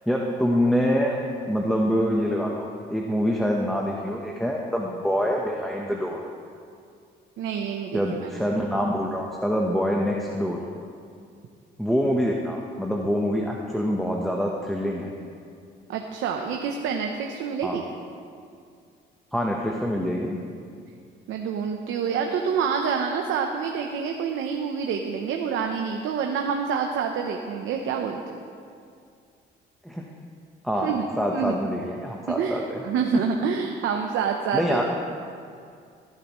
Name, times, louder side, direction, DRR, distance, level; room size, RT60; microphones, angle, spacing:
voice 1, 0.1-1.2 1.5-6.2 7.9-10.6 11.8-15.1 17.6-17.8 19.3-20.4 29.8-30.1 30.6-32.8 33.1-33.2 34.5-34.8, equal, ahead, -1 dB, 1.0 m, -25 dB
voice 2, 7.4-8.3 15.9-17.8 21.3-28.4 30.8-31.0 31.3-31.5 32.3-34.8, right 6 dB, 85° right, 2 dB, 0.8 m, -27 dB
16.0 x 10.5 x 3.1 m, 2.3 s
cardioid pair, 90°, 20 cm